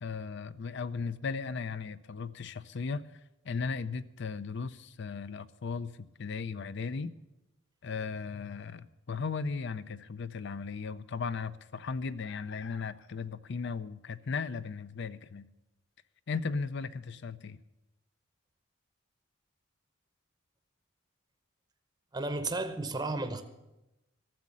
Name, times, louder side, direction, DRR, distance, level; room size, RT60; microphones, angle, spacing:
voice 1, 0.0-3.1 3.4-5.9 6.2-7.1 7.8-15.5 16.3-17.6, left 5 dB, 60° left, 0.5 m, -36 dB
voice 2, 22.1-23.4, right 2 dB, 20° right, 0.8 m, -33 dB
14.0 x 7.3 x 9.8 m
head